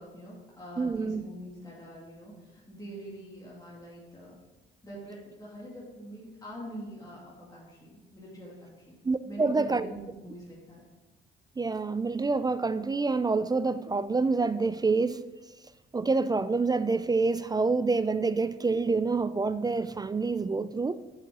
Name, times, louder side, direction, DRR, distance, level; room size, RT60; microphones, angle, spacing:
voice 1, 0.0-4.4 4.8-9.0 9.2-10.8, right 1 dB, 20° left, 2.8 m, -44 dB
voice 2, 0.8-1.2 9.0-9.9 11.6-15.2 15.9-21.0, right 3 dB, 20° right, 0.3 m, -27 dB
6.7 x 6.6 x 5.4 m
cardioid pair, 90°, 20 cm